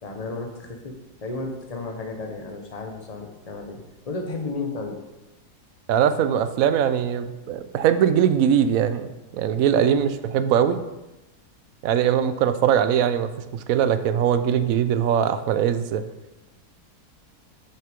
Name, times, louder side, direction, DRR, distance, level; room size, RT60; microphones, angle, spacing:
voice 1, 0.0-5.0 9.7-10.0, left 3 dB, 25° left, 2 dB, 1.0 m, -33 dB
voice 2, 5.9-10.1 10.3-10.8 11.8-16.0, right 9 dB, 65° right, 10 dB, 0.9 m, -21 dB
6.7 x 6.5 x 5.2 m, 1.0 s
omnidirectional pair, 1.7 m